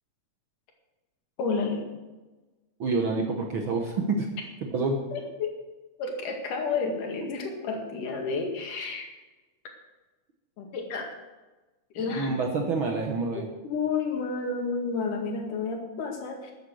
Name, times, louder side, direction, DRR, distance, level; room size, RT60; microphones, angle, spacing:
voice 1, 1.4-1.9 5.1-5.5 6.0-9.1 10.6-11.1 12.0-12.3 13.6-16.5, left 4 dB, 85° left, 2 dB, 3.6 m, -30 dB
voice 2, 2.8-4.3 4.6-5.0 12.1-13.5, right 3 dB, 60° right, 2 dB, 1.4 m, -27 dB
13.0 x 9.0 x 6.4 m, 1.2 s
omnidirectional pair, 3.6 m